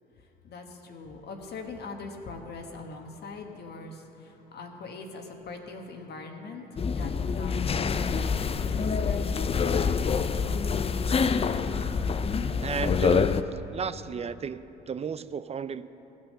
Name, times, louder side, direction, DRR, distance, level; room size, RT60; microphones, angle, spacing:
voice 1, 0.4-10.8, left 3 dB, 55° left, 3 dB, 1.3 m, -42 dB
sound 1, 6.8-13.4, left 5 dB, 30° left, 0.5 m, -26 dB
voice 2, 12.6-13.3 13.7-15.9, right 6 dB, 30° right, 14 dB, 0.4 m, -33 dB
15.0 x 6.5 x 6.6 m, 3.0 s
hypercardioid pair, 60°, 20 cm